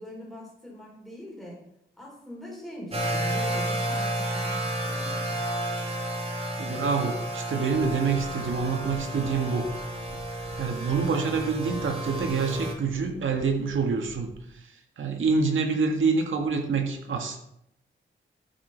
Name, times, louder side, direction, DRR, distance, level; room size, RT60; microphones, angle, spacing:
voice 1, 0.0-1.6 2.0-5.4, equal, ahead, -4 dB, 4.7 m, -42 dB
sound 1, 2.9-12.7, right 1 dB, 30° right, 2.4 m, -31 dB
voice 2, 6.6-9.7 10.6-14.3 15.0-17.4, right 5 dB, 75° right, 3 dB, 1.8 m, -26 dB
sound 2, 8.1-14.3, left 1 dB, 60° left, 3.0 m, -47 dB
12.5 x 7.1 x 4.5 m, 0.77 s
wide cardioid pair, 120°, 20 cm